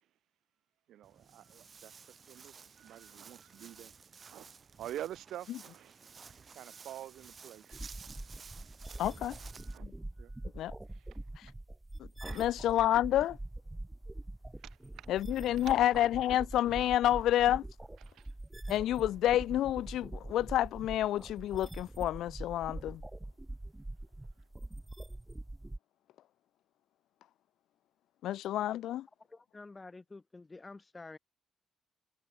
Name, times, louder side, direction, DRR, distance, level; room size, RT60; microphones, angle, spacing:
voice 1, 0.9-3.9 4.2-4.5 4.8-6.2 6.6-7.8 8.9-9.3 9.6-9.9 10.2-10.3 10.9-11.0 12.2-12.5 14.6-15.1 15.6-15.7 17.1-17.3 18.1-18.3 18.7-18.8, right 12 dB, 80° right, 3.9 m, -47 dB
Walk footsteps, 1.0-9.8, right 5 dB, 45° right, 4.7 m, -54 dB
sound 1, 7.7-25.8, right 1 dB, 10° right, 1.0 m, -44 dB
voice 2, 9.0-9.4 10.6-10.7 12.0-13.4 15.1-17.6 18.7-23.0 28.2-29.1, left 13 dB, 80° left, 0.3 m, -29 dB
voice 3, 29.3-31.2, left 3 dB, 25° left, 2.7 m, -49 dB
cardioid pair, 85°, 0 cm